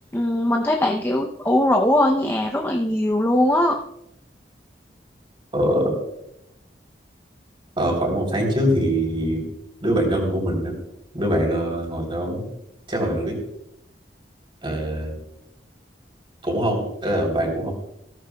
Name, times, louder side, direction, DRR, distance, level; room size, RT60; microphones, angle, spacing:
voice 1, 0.1-3.8, left 1 dB, 15° left, 3 dB, 0.6 m, -20 dB
voice 2, 5.5-6.0 7.8-9.5 9.8-10.7 11.1-12.5 12.9-13.4 14.6-15.2 16.4-17.7, equal, 30° right, 1 dB, 3.4 m, -23 dB
16.0 x 14.0 x 2.3 m, 0.80 s
head